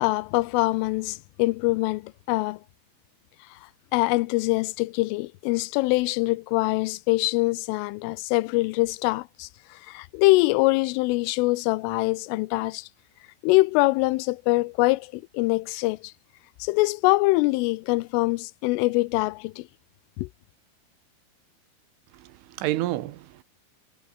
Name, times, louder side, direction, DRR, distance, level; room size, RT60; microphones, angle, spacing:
voice 1, 0.0-2.6 3.9-12.9 13.4-16.1 16.6-19.7 20.2-20.3, left 22 dB, 85° left, 3.2 m, -24 dB
voice 2, 22.1-23.4, right 15 dB, 80° right, 3.8 m, -30 dB
omnidirectional pair, 5.6 m